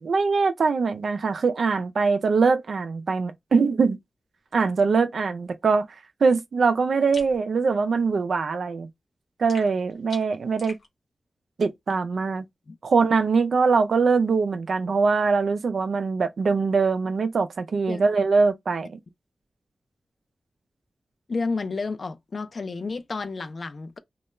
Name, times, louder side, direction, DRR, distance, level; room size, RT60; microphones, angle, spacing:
voice 1, 0.0-4.0 4.5-5.9 6.2-8.9 9.4-10.8 11.6-12.4 12.8-19.0, right 4 dB, 75° right, 0.3 m, -22 dB
sound 1, 7.1-7.4 9.5-10.9, left 3 dB, 75° left, 0.8 m, -43 dB
voice 2, 21.3-24.0, left 4 dB, 55° left, 0.3 m, -31 dB
2.2 x 2.1 x 3.0 m
wide cardioid pair, 100°, 0 cm